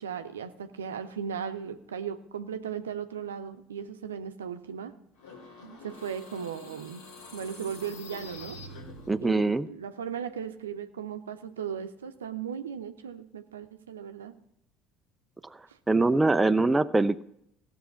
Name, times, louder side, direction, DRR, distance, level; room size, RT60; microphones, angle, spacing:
voice 1, 0.0-4.9 5.8-7.0 7.3-8.6 9.2-14.3 15.7-15.8, right 7 dB, 80° right, 9 dB, 0.7 m, -37 dB
sound 1, 5.2-9.4, left 2 dB, 70° left, 2.3 m, -46 dB
voice 2, 9.1-9.7 15.9-17.2, right 3 dB, 15° right, 12 dB, 0.5 m, -23 dB
16.0 x 7.1 x 5.8 m, 0.75 s
figure-of-eight pair, 60°, 0 cm